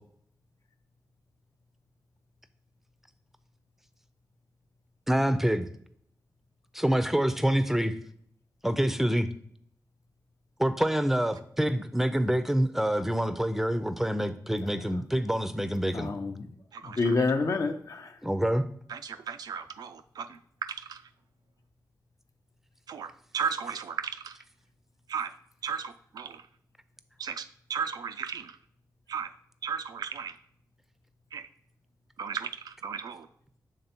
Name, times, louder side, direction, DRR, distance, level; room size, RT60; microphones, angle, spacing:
voice 1, 5.1-5.7 6.7-8.0 8.6-9.3 10.6-16.1 18.2-18.7, equal, 5° right, 11 dB, 0.5 m, -26 dB
voice 2, 14.6-15.0 15.9-16.6 16.8-18.2, left 3 dB, 55° left, 6 dB, 0.6 m, -29 dB
voice 3, 16.7-17.2 18.9-21.0 22.9-24.4 25.1-25.3 25.6-26.5 27.2-28.6 29.1-29.3 29.6-30.4 31.3-31.5 32.2-33.3, right 6 dB, 80° right, 9 dB, 0.4 m, -35 dB
6.8 x 3.3 x 4.3 m, 0.65 s
cardioid pair, 70°, 7 cm